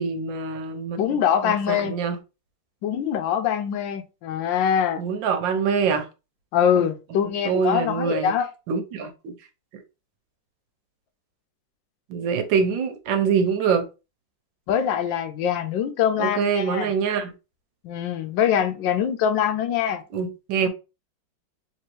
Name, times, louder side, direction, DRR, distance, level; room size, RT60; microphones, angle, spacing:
voice 1, 0.0-1.2 1.4-2.2 5.0-6.1 6.8-6.9 7.2-8.3 8.7-9.3 12.1-13.9 16.2-17.3 20.1-20.7, right 6 dB, 90° right, 1.5 m, -25 dB
voice 2, 1.0-1.9 2.8-5.0 6.5-8.5 14.7-16.9 17.8-20.0, left 8 dB, 90° left, 1.4 m, -23 dB
3.4 x 3.1 x 3.2 m
omnidirectional pair, 2.0 m